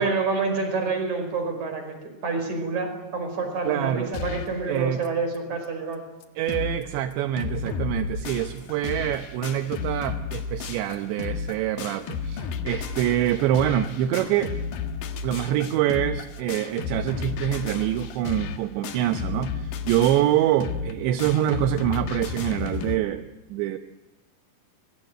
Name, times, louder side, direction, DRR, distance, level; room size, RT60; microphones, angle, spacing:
voice 1, 0.0-6.0, right 4 dB, 35° right, 7 dB, 5.9 m, -28 dB
voice 2, 3.7-4.1 4.7-5.0 6.4-14.5 15.2-23.2 23.5-23.8, right 12 dB, 75° right, 9 dB, 2.8 m, -25 dB
sound 1, 4.1-4.6 5.0-5.1 5.3-5.4 5.9-6.0 6.2-6.8 7.1-23.0, left 6 dB, 60° left, 2.7 m, -32 dB
24.5 x 22.5 x 9.1 m, 1.1 s
omnidirectional pair, 5.9 m